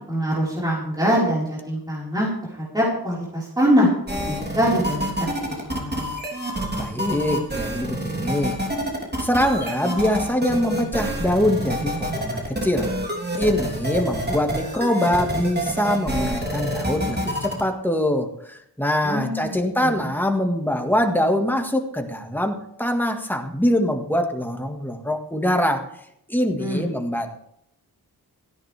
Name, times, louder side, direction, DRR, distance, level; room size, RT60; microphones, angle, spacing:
voice 1, 0.0-3.9 4.3-5.3 5.6-6.1 19.0-19.5 19.8-20.1 26.6-26.8, equal, 10° right, -6 dB, 4.9 m, -23 dB
sound 1, 4.1-17.6, right 1 dB, 25° right, 3.4 m, -27 dB
voice 2, 6.8-8.6 9.2-12.9 13.4-25.8 26.3-27.4, left 1 dB, 5° left, 3 dB, 1.9 m, -23 dB
18.0 x 13.5 x 3.5 m, 0.77 s
wide cardioid pair, 110°, 38 cm